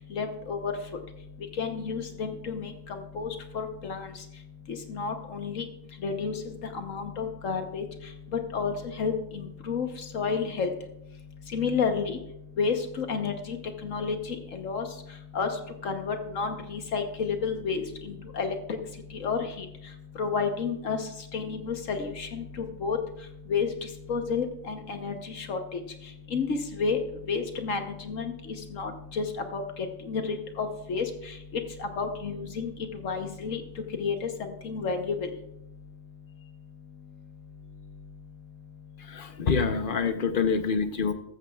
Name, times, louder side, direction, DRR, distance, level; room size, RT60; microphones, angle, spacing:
voice 1, 0.1-0.7 1.6-3.3 3.5-4.1 4.9-5.6 6.0-6.3 6.8-7.8 8.5-9.9 10.1-10.7 11.5-12.2 12.6-13.6 13.8-14.2 14.5-14.8 15.3-15.5 15.8-18.6 19.2-19.4 20.2-21.0 21.3-22.4 22.8-23.0 23.5-23.7 24.1-25.6 26.3-27.0 27.3-28.3 28.8-29.2 29.5-29.6 30.1-31.0 31.8-32.7 33.0-33.6 34.0-34.1 34.4-35.1, left 5 dB, 70° left, 5 dB, 1.4 m, -30 dB
voice 2, 39.0-41.1, left 5 dB, 45° left, 9 dB, 0.9 m, -26 dB
14.0 x 14.0 x 2.4 m, 0.78 s
omnidirectional pair, 1.4 m